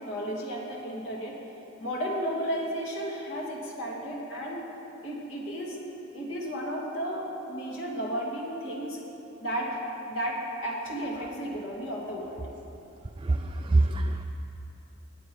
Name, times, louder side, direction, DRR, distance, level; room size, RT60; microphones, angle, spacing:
voice 1, 0.0-1.4 1.8-4.6 5.0-5.8 6.1-9.0 9.4-9.8 10.1-12.4, equal, 75° left, -3 dB, 2.7 m, -33 dB
voice 2, 13.2-14.2, right 2 dB, 25° right, 5 dB, 0.4 m, -25 dB
20.5 x 8.6 x 4.8 m, 3.0 s
head